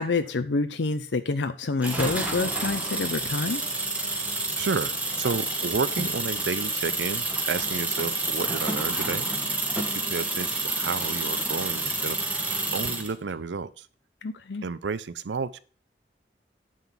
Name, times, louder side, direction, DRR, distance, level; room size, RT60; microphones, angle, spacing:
voice 1, 0.0-3.6 14.2-14.6, left 3 dB, 80° left, 10 dB, 0.7 m, -27 dB
sound 1, 1.8-13.1, right 2 dB, 10° right, 1.5 m, -29 dB
voice 2, 4.3-9.3 9.7-13.9 14.6-15.6, right 5 dB, 80° right, 15 dB, 0.5 m, -32 dB
9.2 x 4.0 x 7.2 m, 0.40 s
head